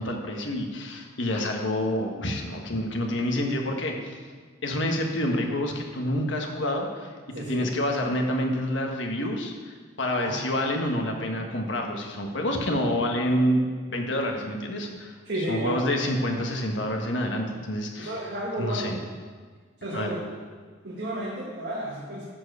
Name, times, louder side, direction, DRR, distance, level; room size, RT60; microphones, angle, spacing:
voice 1, 0.0-4.2 4.6-7.1 7.4-15.1 15.5-18.2 18.6-19.0 19.9-20.1, left 1 dB, 70° left, 2 dB, 1.4 m, -28 dB
voice 2, 7.3-7.7 10.1-10.4 15.2-15.8 18.0-18.9 19.8-20.2 20.8-22.2, right 1 dB, 60° right, -5 dB, 1.7 m, -32 dB
11.0 x 4.7 x 6.8 m, 1.6 s
head